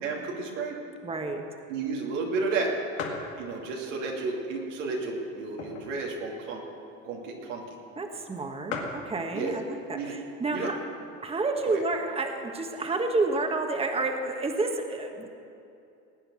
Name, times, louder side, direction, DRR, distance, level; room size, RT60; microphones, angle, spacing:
voice 1, 0.0-0.8 1.7-2.7 3.4-6.6 7.0-7.6 9.3-9.6 9.9-10.1 10.5-10.7 11.6-11.8, right 4 dB, 90° right, -1 dB, 2.6 m, -32 dB
voice 2, 1.0-1.4 8.0-10.8 11.2-15.3, right 3 dB, 15° right, 4 dB, 1.3 m, -30 dB
sound 1, 2.0-2.1 2.5-2.6 3.0-3.3 4.0-4.1 4.9-6.0 6.4-6.5 6.7-6.9 7.7-7.8 8.0-8.1 8.4-8.5 8.7-9.1 10.0-10.3 10.9-11.0 11.1-11.9, left 5 dB, 90° left, 2.0 m, -37 dB
18.5 x 8.8 x 6.2 m, 2.7 s
supercardioid pair, 95°, 36 cm